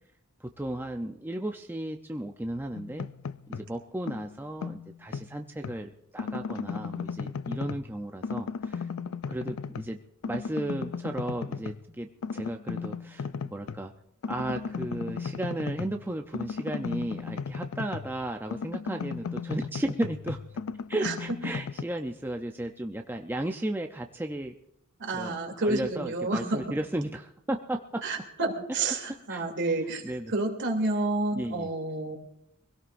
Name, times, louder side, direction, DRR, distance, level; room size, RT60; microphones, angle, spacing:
voice 1, 0.4-3.1 3.5-8.9 9.3-10.0 10.3-13.9 14.3-20.4 20.9-24.5 25.1-25.4 25.6-28.0 29.3-29.4 30.0-30.3 31.3-31.7, right 1 dB, 10° right, 4 dB, 0.6 m, -34 dB
sound 1, 2.7-3.7 4.1-5.8 6.2-7.9 8.2-10.0 10.2-11.8 12.2-13.8 14.2-18.2 18.5-21.8, left 5 dB, 70° left, 0.5 m, -36 dB
voice 2, 25.0-26.8 28.0-32.2, right 2 dB, 55° right, 2 dB, 3.0 m, -30 dB
24.0 x 17.0 x 2.6 m, 0.77 s
head